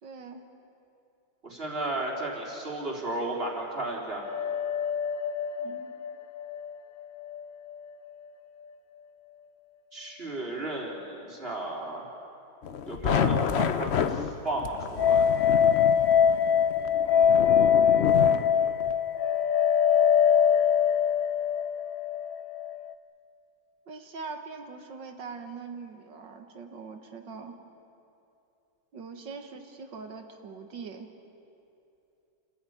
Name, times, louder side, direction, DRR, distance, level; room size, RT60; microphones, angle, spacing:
voice 1, 0.0-0.5 5.6-5.9 23.9-27.6 28.9-31.1, right 4 dB, 65° right, 6 dB, 2.2 m, -42 dB
voice 2, 1.4-4.2 9.9-12.1 12.9-15.3, right 2 dB, 30° right, -2 dB, 3.8 m, -34 dB
sound 1, 4.2-7.4 7.7-7.8 15.0-22.9, left 8 dB, 60° left, 1.0 m, -23 dB
sound 2, 12.6-18.9, left 7 dB, 85° left, 0.5 m, -30 dB
29.5 x 14.0 x 9.3 m, 2.8 s
omnidirectional pair, 2.1 m